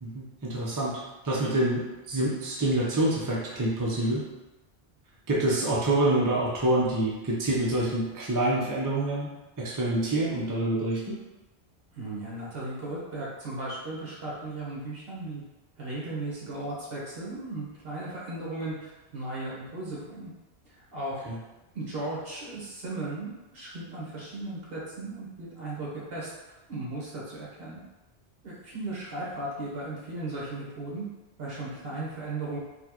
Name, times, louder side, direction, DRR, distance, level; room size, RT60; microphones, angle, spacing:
voice 1, 0.0-4.3 5.3-9.3 9.6-11.2 21.3-21.4, right 1 dB, 25° right, -5 dB, 0.5 m, -27 dB
voice 2, 11.9-15.4 15.8-20.3 20.7-21.3 21.7-26.3 26.7-27.8 28.4-31.0 31.4-32.6, right 2 dB, 60° right, -6 dB, 1.3 m, -36 dB
4.2 x 2.3 x 2.9 m, 1.0 s
omnidirectional pair, 1.1 m